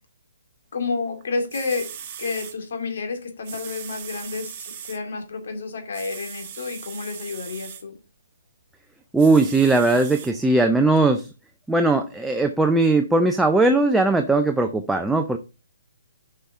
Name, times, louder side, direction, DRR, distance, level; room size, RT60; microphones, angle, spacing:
voice 1, 0.7-1.9 2.2-8.0, left 4 dB, 60° left, 4 dB, 2.4 m, -30 dB
sound 1, 1.2-1.3 1.5-2.6 3.4-5.0 5.9-7.8 9.2-10.3 11.0-11.1, right 9 dB, 35° right, 1.2 m, -39 dB
voice 2, 9.1-11.3 11.7-15.4, right 2 dB, 5° right, 5 dB, 0.4 m, -19 dB
9.9 x 5.6 x 3.5 m, 0.30 s
hypercardioid pair, 160°, 0 cm